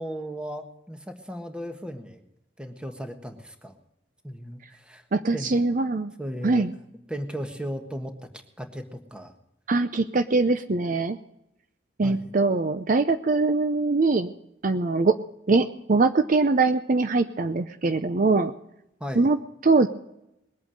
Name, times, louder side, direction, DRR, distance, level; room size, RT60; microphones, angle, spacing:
voice 1, 0.0-2.2 2.6-3.7 4.2-5.0 5.3-5.5 6.2-6.7 7.1-8.1 8.6-9.3 12.0-12.4 19.0-19.3, equal, 5° right, 6 dB, 1.4 m, -36 dB
voice 2, 5.1-6.1 6.4-6.7 9.7-11.2 12.0-14.3 14.6-15.2 15.5-18.5 19.2-19.9, right 3 dB, 45° right, 10 dB, 0.6 m, -22 dB
21.0 x 8.5 x 6.5 m, 0.83 s
head